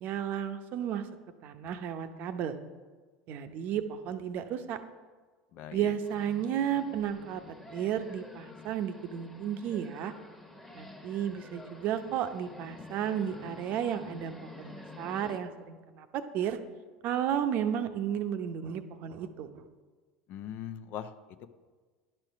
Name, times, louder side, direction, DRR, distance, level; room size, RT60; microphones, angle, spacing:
voice 1, 0.0-1.1 1.4-2.6 3.3-4.8 5.7-7.4 7.7-10.1 10.7-16.6 17.0-19.6, right 9 dB, 50° right, 9 dB, 0.7 m, -33 dB
voice 2, 5.5-5.9 20.3-21.1 21.4-21.5, left 9 dB, 50° left, 10 dB, 0.6 m, -40 dB
sound 1, 6.0-15.4, left 2 dB, 5° left, 1.2 m, -49 dB
10.5 x 4.5 x 5.8 m, 1.4 s
hypercardioid pair, 75°, 4 cm